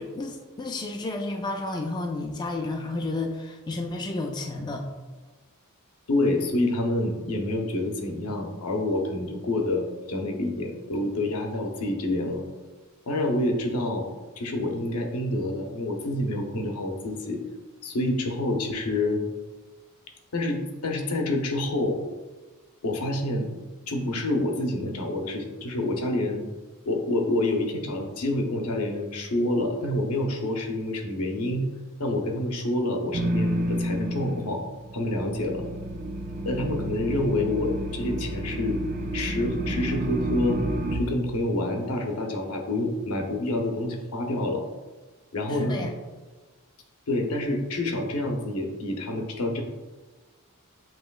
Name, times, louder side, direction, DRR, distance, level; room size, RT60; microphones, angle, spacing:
voice 1, 0.0-4.9 45.5-45.9, left 2 dB, 20° left, 2 dB, 0.3 m, -31 dB
voice 2, 6.1-12.4 13.1-14.1 14.4-17.4 17.8-19.2 20.3-22.0 22.8-23.5 23.9-26.4 26.9-31.7 32.0-34.6 34.9-35.6 36.4-38.8 39.1-40.6 40.9-44.6 45.3-45.7 47.1-49.6, left 1 dB, 80° left, 2 dB, 0.7 m, -27 dB
sound 1, 33.1-34.6 34.8-41.0, right 1 dB, 40° right, 0.5 m, -30 dB
7.4 x 3.0 x 2.3 m, 1.2 s
head